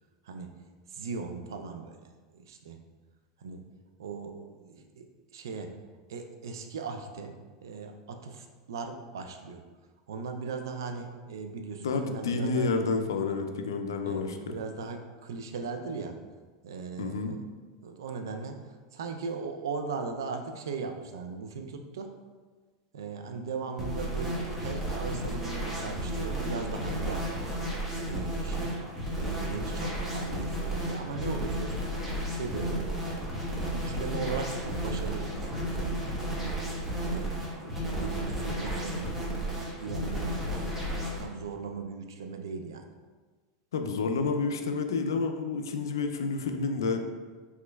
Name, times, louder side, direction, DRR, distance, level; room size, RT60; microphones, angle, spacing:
voice 1, 0.9-2.0 2.3-2.8 3.4-3.6 4.0-5.8 6.1-7.4 7.6-9.6 10.1-12.7 13.2-13.3 14.0-16.2 16.6-17.4 17.8-22.1 22.9-27.5 28.0-28.8 29.2-31.9 32.3-33.4 33.7-36.5 37.0-37.3 37.6-42.9, right 4 dB, 85° right, 5 dB, 0.3 m, -38 dB
voice 2, 11.8-14.6 17.0-17.3 43.7-47.0, left 4 dB, 85° left, 6 dB, 0.3 m, -29 dB
sound 1, 23.8-41.2, right 1 dB, 15° right, 0.9 m, -33 dB
3.5 x 3.0 x 2.2 m, 1.4 s
hypercardioid pair, 105°, 2 cm